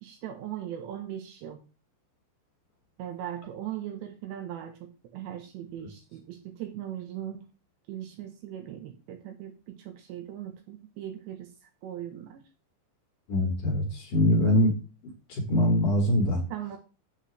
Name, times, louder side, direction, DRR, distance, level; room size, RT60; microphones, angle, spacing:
voice 1, 0.0-1.6 3.0-7.5 7.9-11.5 11.8-12.4 16.5-16.8, right 11 dB, 75° right, 6 dB, 2.8 m, -39 dB
voice 2, 13.3-14.7 15.3-16.4, left 1 dB, 55° left, 1 dB, 2.8 m, -23 dB
8.8 x 8.0 x 3.2 m, 0.32 s
omnidirectional pair, 5.7 m